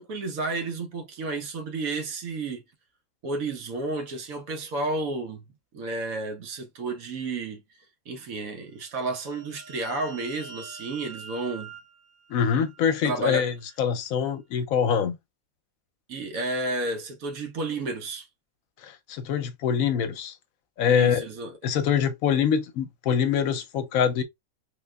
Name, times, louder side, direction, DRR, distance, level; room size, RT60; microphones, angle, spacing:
voice 1, 0.0-2.6 3.2-5.4 5.7-7.6 8.1-11.7 13.0-13.5 16.1-18.3 20.9-21.5, right 2 dB, 75° right, 1.2 m, -31 dB
sound 1, 8.8-13.3, right 4 dB, 50° right, 0.6 m, -46 dB
voice 2, 12.3-15.2 18.8-20.3 20.8-21.2 21.6-24.2, left 7 dB, 80° left, 1.1 m, -24 dB
3.4 x 2.3 x 3.3 m
omnidirectional pair, 1.5 m